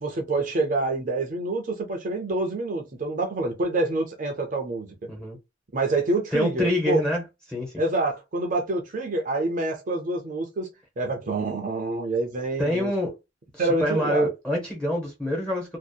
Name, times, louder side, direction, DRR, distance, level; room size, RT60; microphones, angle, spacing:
voice 1, 0.0-4.9 5.7-7.0 7.8-10.7 11.0-12.9 13.6-14.3, right 2 dB, 45° right, 0.5 m, -27 dB
voice 2, 6.3-7.2 7.5-7.7 12.6-13.1 13.5-15.8, equal, 5° left, 0.7 m, -26 dB
2.7 x 2.0 x 2.2 m
head